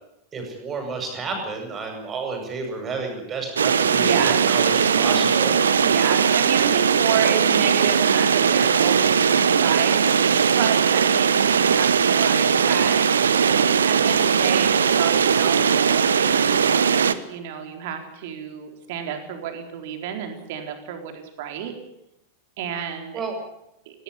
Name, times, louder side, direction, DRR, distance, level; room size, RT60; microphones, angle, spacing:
voice 1, 0.3-5.6 23.1-23.4, right 4 dB, 25° right, 3 dB, 7.9 m, -31 dB
sound 1, 3.6-17.1, right 6 dB, 70° right, 1.1 m, -19 dB
voice 2, 3.9-4.4 5.8-13.0 13.9-16.8 17.1-21.7 22.6-23.2, right 9 dB, 50° right, 5 dB, 4.2 m, -30 dB
19.0 x 18.0 x 9.9 m, 0.84 s
figure-of-eight pair, 90°, 0 cm